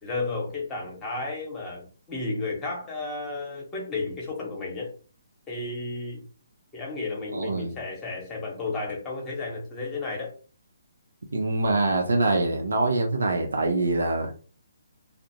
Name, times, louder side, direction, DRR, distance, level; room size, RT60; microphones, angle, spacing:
voice 1, 0.0-4.9 5.5-6.2 6.7-10.3, left 3 dB, 15° left, 0.9 m, -33 dB
voice 2, 7.3-7.7 11.3-14.3, right 2 dB, 85° right, 0.5 m, -24 dB
2.4 x 2.0 x 2.7 m
hypercardioid pair, 145°, 0 cm